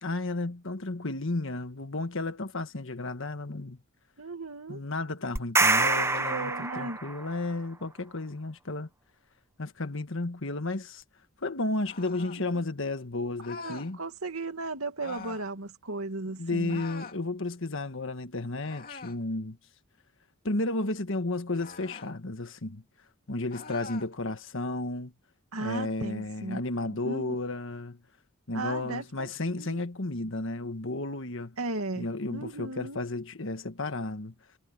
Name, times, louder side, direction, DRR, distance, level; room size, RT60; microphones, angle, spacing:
voice 1, 0.0-3.8 4.7-8.9 9.6-11.0 11.4-14.0 16.4-19.6 20.4-22.8 23.3-25.1 25.6-28.0 28.5-31.6 31.9-34.3, left 2 dB, 60° left, 1.5 m, -33 dB
voice 2, 4.2-4.8 5.8-7.0 13.6-16.8 25.5-26.6 26.9-27.4 28.5-29.8 31.6-32.1 32.3-33.0, right 2 dB, 80° right, 2.3 m, -36 dB
sound 1, 5.4-7.3, right 3 dB, 10° right, 0.8 m, -25 dB
sound 2, 11.8-12.4 13.4-13.9 15.0-15.5 16.7-17.2 18.6-19.2 21.5-22.1 23.5-24.1, left 5 dB, 45° left, 2.5 m, -44 dB
head